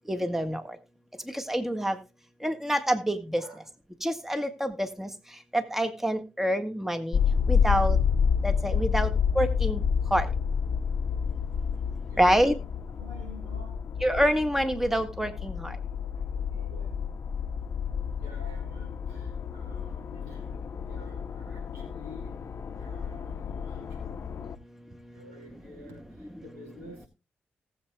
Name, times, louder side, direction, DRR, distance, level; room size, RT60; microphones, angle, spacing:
voice 1, 0.1-0.8 1.3-2.0 2.4-3.4 4.0-5.1 5.5-7.2 7.5-8.0 8.4-9.8 10.1-10.3 12.2-12.5 14.0-15.8, equal, 5° right, 8 dB, 1.8 m, -27 dB
sound 1, 7.1-24.6, left 6 dB, 60° left, 0.7 m, -29 dB
voice 2, 12.1-13.8 15.4-17.0 17.9-22.3 22.8-23.4 23.6-24.1 25.1-27.1, left 1 dB, 90° right, 4 dB, 5.0 m, -50 dB
18.5 x 8.0 x 2.3 m, 0.29 s
hypercardioid pair, 40°, 5 cm